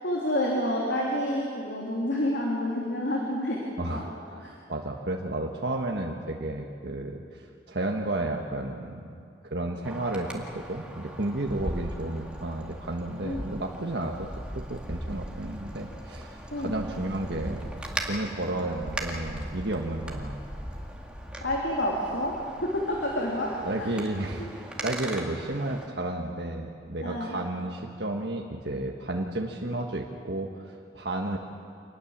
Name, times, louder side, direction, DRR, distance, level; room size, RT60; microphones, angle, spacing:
voice 1, 0.0-4.0 4.4-4.5 13.2-13.4 16.5-16.7 21.4-22.3 22.6-23.5 23.8-23.9 24.4-24.5 27.0-27.4, left 1 dB, 80° left, -3 dB, 3.4 m, -29 dB
voice 2, 3.8-9.1 9.4-14.3 14.5-17.7 18.0-20.4 23.6-31.4, right 2 dB, 75° right, 1 dB, 1.4 m, -32 dB
Wind, 9.8-25.9, equal, 5° right, 2.1 m, -39 dB
27.0 x 20.0 x 7.4 m, 2.4 s
head